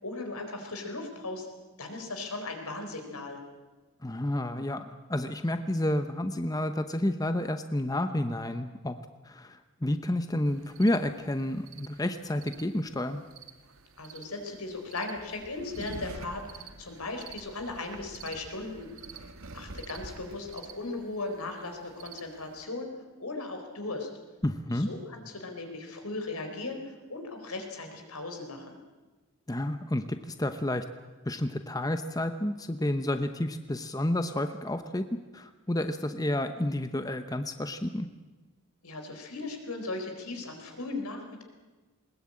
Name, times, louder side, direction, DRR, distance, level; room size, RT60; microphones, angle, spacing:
voice 1, 0.0-1.5 1.8-3.4 14.0-18.9 19.5-22.9 23.2-24.1 24.7-28.8 38.8-41.4, left 2 dB, 85° left, 4 dB, 4.2 m, -37 dB
voice 2, 4.0-8.9 9.2-13.2 24.4-24.9 29.5-30.8 31.3-35.1 35.3-38.1, left 1 dB, 15° left, 9 dB, 0.8 m, -30 dB
sound 1, 10.5-22.6, right 4 dB, 70° right, 1.6 m, -48 dB
20.5 x 20.0 x 8.7 m, 1.2 s
head